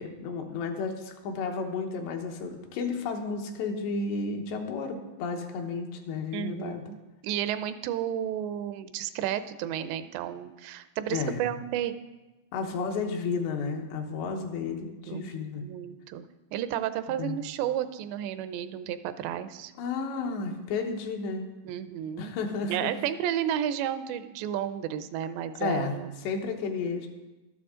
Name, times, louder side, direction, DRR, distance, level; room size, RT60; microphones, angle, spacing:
voice 1, 0.0-6.8 11.1-11.4 12.5-15.6 17.1-17.4 19.8-21.5 22.2-22.9 25.6-27.1, left 4 dB, 80° left, 3 dB, 3.3 m, -32 dB
voice 2, 6.3-11.9 15.1-15.2 15.6-16.3 16.5-19.7 21.7-22.3 22.7-26.1, right 10 dB, 85° right, 12 dB, 2.8 m, -32 dB
12.5 x 12.0 x 3.7 m, 1.1 s
omnidirectional pair, 4.9 m